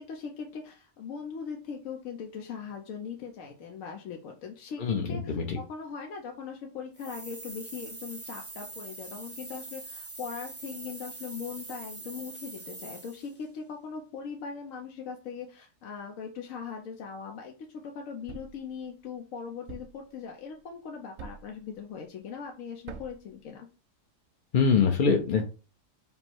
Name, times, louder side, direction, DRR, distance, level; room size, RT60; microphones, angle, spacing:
voice 1, 0.0-17.5 17.8-23.7, left 6 dB, 85° left, 1 dB, 1.1 m, -40 dB
voice 2, 4.8-5.6 24.5-25.5, left 5 dB, 55° left, 1 dB, 0.6 m, -24 dB
sound 1, 6.9-13.4, right 3 dB, 15° right, 0.5 m, -43 dB
Thump thud, 18.3-18.7 19.7-20.1 21.2-21.6 22.9-23.3, right 5 dB, 80° right, 1.0 m, -44 dB
5.3 x 2.0 x 4.4 m, 0.34 s
omnidirectional pair, 1.4 m